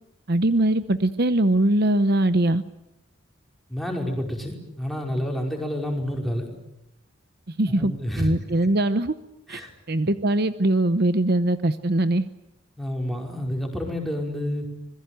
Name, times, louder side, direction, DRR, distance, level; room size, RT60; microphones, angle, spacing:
voice 1, 0.3-2.6 7.5-9.1 9.5-12.3, right 1 dB, 50° right, 12 dB, 0.9 m, -21 dB
voice 2, 3.7-6.5 7.8-8.3 9.5-9.7 12.8-14.7, equal, ahead, 1 dB, 5.1 m, -29 dB
26.0 x 21.5 x 9.3 m, 0.85 s
head